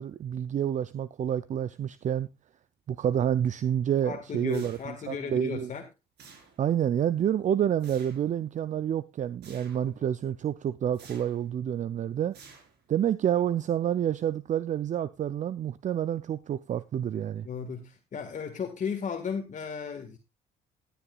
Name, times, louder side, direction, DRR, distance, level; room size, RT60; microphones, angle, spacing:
voice 1, 0.0-2.3 2.9-5.7 6.6-12.4 12.9-17.5, right 9 dB, 40° right, 0.5 m, -28 dB
voice 2, 4.0-5.9 17.4-20.2, left 6 dB, 45° left, 1.7 m, -35 dB
sound 1, 4.5-5.2 6.2-6.8 7.8-8.3 9.4-9.9 10.9-11.5 12.3-13.0, right 5 dB, 65° right, 4.4 m, -52 dB
17.0 x 10.5 x 2.4 m
supercardioid pair, 85°, 18 cm